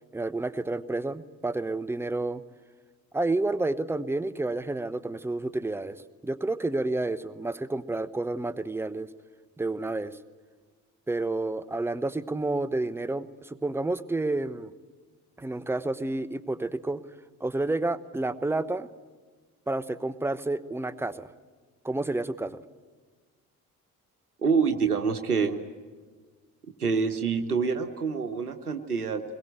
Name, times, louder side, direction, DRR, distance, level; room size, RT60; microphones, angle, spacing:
voice 1, 0.1-2.4 3.1-9.1 9.6-10.2 11.1-14.7 15.4-17.0 17.4-18.9 19.7-21.3 21.8-22.6, right 2 dB, 5° right, 14 dB, 0.9 m, -30 dB
voice 2, 24.4-25.6 26.8-29.2, right 5 dB, 85° right, 7 dB, 0.9 m, -26 dB
22.5 x 22.0 x 9.1 m, 1.5 s
figure-of-eight pair, 45°, 44 cm